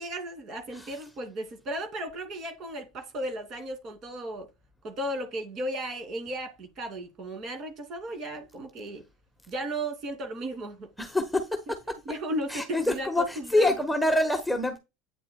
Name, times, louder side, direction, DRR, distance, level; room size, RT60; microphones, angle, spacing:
voice 1, 0.0-4.5 4.8-9.0 9.5-10.9 12.1-13.1 13.4-13.7, right 1 dB, 45° right, 2.5 m, -35 dB
voice 2, 11.0-12.0 12.5-14.8, left 1 dB, 5° left, 1.3 m, -26 dB
9.1 x 6.9 x 2.2 m
hypercardioid pair, 85°, 0 cm